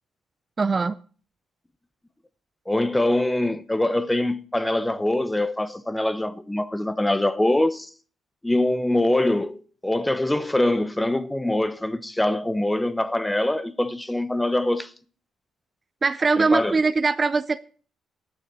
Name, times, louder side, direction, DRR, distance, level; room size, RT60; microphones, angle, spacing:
voice 1, 0.6-1.0 16.0-17.6, right 4 dB, 30° right, 0.4 m, -21 dB
voice 2, 2.7-7.9 8.4-14.9 16.4-16.7, left 1 dB, 10° left, 0.8 m, -23 dB
11.5 x 6.9 x 6.1 m
cardioid pair, 90°, 0 cm